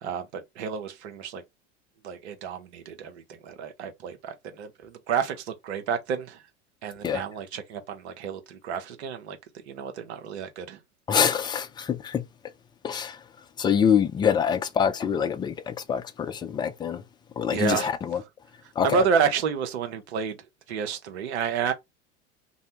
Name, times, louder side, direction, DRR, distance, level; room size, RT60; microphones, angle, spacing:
voice 1, 0.0-1.4 2.0-6.4 6.8-9.4 9.7-10.8 17.5-17.9 18.8-20.4 20.7-21.7, right 6 dB, 65° right, 0.9 m, -30 dB
voice 2, 11.1-12.2 12.8-13.2 13.6-17.0 17.4-18.2 18.8-19.1, left 7 dB, 15° left, 0.3 m, -25 dB
2.6 x 2.1 x 2.8 m
figure-of-eight pair, 75°, 35 cm